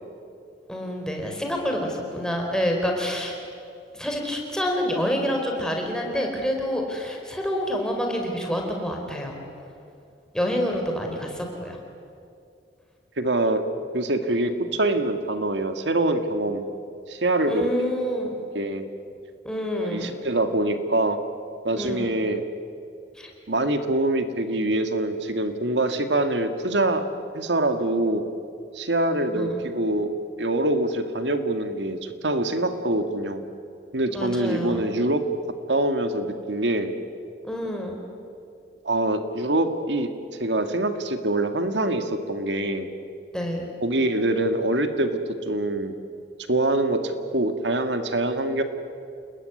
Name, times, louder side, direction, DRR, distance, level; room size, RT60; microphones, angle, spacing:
voice 1, 0.7-3.4 3.9-9.3 10.3-11.8 17.5-18.4 19.4-20.1 21.7-22.1 23.2-23.3 29.3-29.6 34.1-34.8 37.4-37.9 43.3-43.7, equal, 5° left, 1 dB, 4.7 m, -27 dB
voice 2, 13.2-13.6 13.9-16.6 17.1-17.7 18.6-18.8 19.8-21.2 21.6-22.4 23.5-27.1 27.3-28.2 28.7-30.1 30.4-33.4 33.9-35.2 35.7-36.9 38.8-40.1 40.4-42.9 43.8-45.2 45.5-45.9 46.5-48.6, right 1 dB, 85° right, 8 dB, 2.0 m, -24 dB
29.5 x 20.5 x 9.7 m, 2.5 s
head